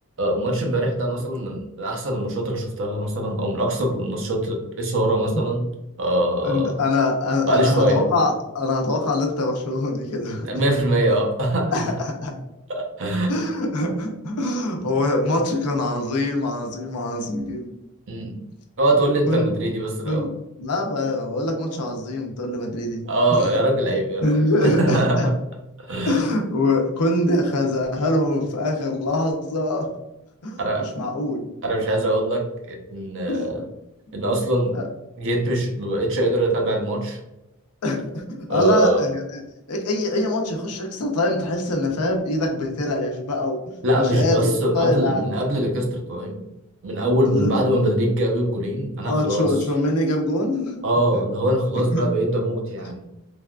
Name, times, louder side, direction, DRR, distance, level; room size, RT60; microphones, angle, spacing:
voice 1, 0.2-5.7 6.0-6.8 7.5-8.1 10.4-11.9 12.7-13.4 18.1-18.4 18.8-20.3 23.1-25.3 25.9-26.2 30.6-30.9 31.6-33.6 34.1-34.8 35.2-37.2 38.5-39.0 43.8-46.4 46.8-49.5 50.8-53.0, right 1 dB, 60° right, 2 dB, 0.7 m, -23 dB
voice 2, 6.4-10.5 11.7-11.9 12.2-12.3 13.3-17.7 19.3-19.5 20.0-20.3 20.6-23.0 23.4-23.5 24.2-25.3 26.1-29.9 30.4-30.6 31.0-31.5 33.3-33.4 34.7-34.8 37.8-39.4 39.7-43.6 43.9-44.4 44.7-45.2 47.3-47.5 49.0-50.8 51.9-52.0, left 2 dB, 90° left, 2 dB, 0.6 m, -23 dB
3.3 x 2.4 x 2.2 m, 0.91 s
head